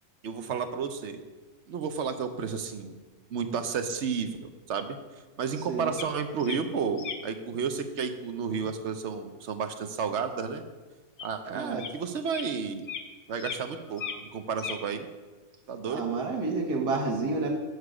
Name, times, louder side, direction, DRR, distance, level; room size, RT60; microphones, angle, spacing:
voice 1, 0.2-1.2 1.7-3.0 3.3-5.0 5.4-10.6 11.2-12.8 13.3-15.1 15.7-16.1, right 6 dB, 60° right, 8 dB, 0.8 m, -32 dB
sound 1, 6.0-6.1 6.4-6.6 7.0-7.2 11.2-11.3 11.8-11.9 12.3-12.4 12.9-13.0 13.4-13.6 13.9-14.3 14.6-14.8, left 7 dB, 50° left, 0.6 m, -36 dB
voice 2, 11.5-11.9 15.9-17.5, right 3 dB, 85° right, 1 dB, 1.8 m, -29 dB
8.1 x 6.5 x 4.9 m, 1.3 s
omnidirectional pair, 1.7 m